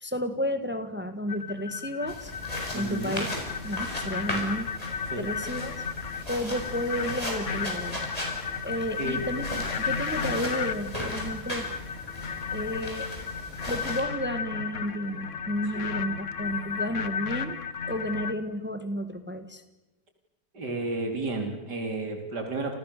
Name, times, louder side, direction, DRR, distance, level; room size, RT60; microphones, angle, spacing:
voice 1, 0.0-2.3 2.7-3.3 3.6-4.7 5.2-5.7 6.3-8.0 8.6-9.5 9.8-11.7 12.5-13.1 13.7-17.6 17.9-19.6, equal, 5° right, 9 dB, 1.8 m, -32 dB
sound 1, 1.3-18.3, left 6 dB, 50° left, 1.5 m, -34 dB
sound 2, 2.1-14.0, left 1 dB, 20° left, 7.2 m, -37 dB
voice 2, 2.7-3.2 5.1-5.3 9.0-9.2 15.7-15.9 20.5-22.7, right 2 dB, 85° right, 4 dB, 4.1 m, -32 dB
29.5 x 29.0 x 6.9 m, 0.99 s
omnidirectional pair, 1.8 m